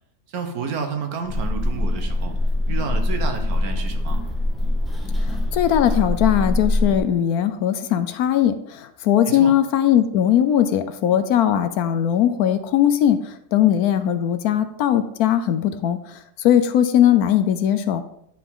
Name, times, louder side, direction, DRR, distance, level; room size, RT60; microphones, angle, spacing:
voice 1, 0.3-2.3 2.7-4.2 9.3-9.5, right 5 dB, 70° right, 6 dB, 1.5 m, -30 dB
sound 1, 1.2-7.0, left 1 dB, ahead, 1.0 m, -23 dB
voice 2, 5.3-16.0 16.4-18.0, left 10 dB, 75° left, 10 dB, 1.1 m, -19 dB
9.5 x 5.0 x 3.7 m, 0.71 s
omnidirectional pair, 1.7 m